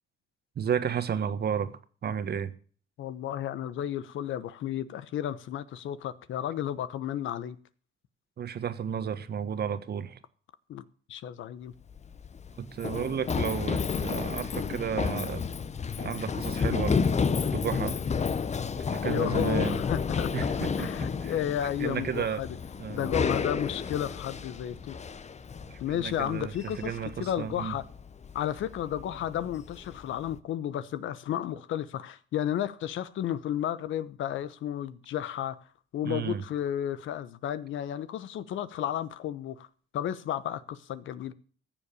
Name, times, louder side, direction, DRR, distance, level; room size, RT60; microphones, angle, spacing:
voice 1, 0.6-2.5 8.4-10.2 12.6-15.5 16.0-17.1 17.5-18.0 18.9-19.8 20.3-21.3 21.8-22.4 22.8-23.1 25.7-27.7 36.0-36.4, right 8 dB, 55° right, 1.4 m, -33 dB
voice 2, 3.0-7.6 10.7-10.8 11.1-11.7 19.1-20.3 20.8-22.6 22.9-25.0 25.8-27.8 28.3-35.6 35.9-39.7 39.9-41.3, left 11 dB, 75° left, 1.0 m, -33 dB
Run, 11.8-30.4, left 5 dB, 35° left, 0.9 m, -31 dB
15.0 x 7.3 x 6.8 m
cardioid pair, 90°, 20 cm